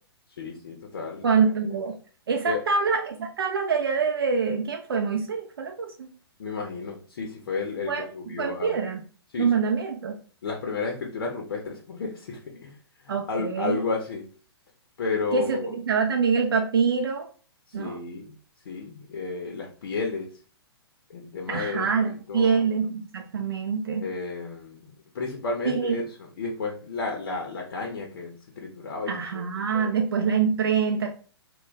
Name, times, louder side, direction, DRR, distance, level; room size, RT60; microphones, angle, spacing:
voice 1, 0.4-1.8 2.4-2.6 6.4-8.8 9.3-9.5 10.4-12.8 13.0-14.2 15.0-15.6 17.7-18.3 18.7-20.3 21.1-22.7 24.0-24.9 25.1-29.4 29.7-30.0, left 4 dB, 55° left, 1 dB, 0.6 m, -32 dB
voice 2, 1.2-1.9 2.3-6.1 7.9-8.1 8.4-9.0 9.4-10.2 13.1-13.8 15.3-17.3 17.7-18.0 21.5-24.1 25.6-26.0 29.1-31.1, right 5 dB, 60° right, 2 dB, 0.5 m, -25 dB
2.2 x 2.1 x 3.8 m, 0.40 s
figure-of-eight pair, 120°, 13 cm